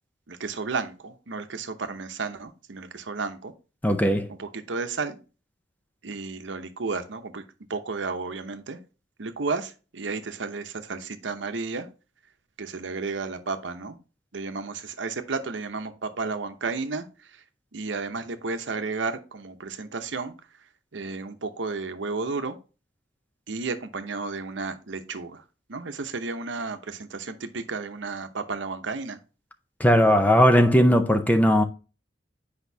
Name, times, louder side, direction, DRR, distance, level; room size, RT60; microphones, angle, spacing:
voice 1, 0.3-3.5 4.4-5.2 6.0-7.4 7.7-8.8 9.2-11.9 12.6-14.0 14.3-17.1 17.7-20.3 20.9-22.6 23.5-25.4 25.7-29.2, right 4 dB, 80° right, 0.8 m, -32 dB
voice 2, 3.8-4.3 29.8-31.6, equal, 10° left, 0.6 m, -18 dB
8.1 x 5.1 x 2.7 m
head